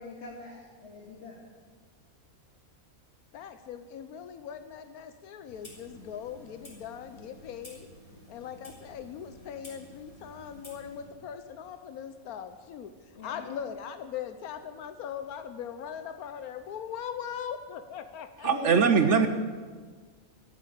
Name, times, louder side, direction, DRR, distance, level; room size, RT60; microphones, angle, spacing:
voice 1, 0.0-1.4 13.2-13.5 18.4-19.3, left 1 dB, 50° left, -3 dB, 2.3 m, -40 dB
voice 2, 3.3-7.9 8.3-18.8, left 8 dB, 90° left, 9 dB, 1.3 m, -40 dB
Clock, 5.5-11.1, equal, 25° left, 3.3 m, -51 dB
voice 3, 18.4-19.3, right 5 dB, 60° right, 9 dB, 1.0 m, -21 dB
13.0 x 10.5 x 8.2 m, 1.5 s
omnidirectional pair, 1.5 m